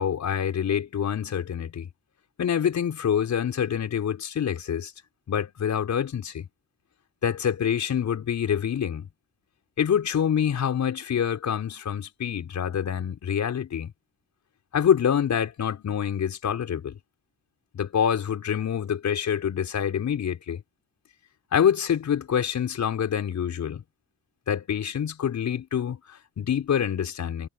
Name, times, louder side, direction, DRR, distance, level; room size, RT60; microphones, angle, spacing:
voice 1, 0.0-1.9 2.4-4.9 5.3-6.5 7.2-9.1 9.8-13.9 14.7-17.0 17.7-20.6 21.5-23.8 24.5-27.5, left 8 dB, 60° left, 6.0 m, -26 dB
supercardioid pair, 70°, 32 cm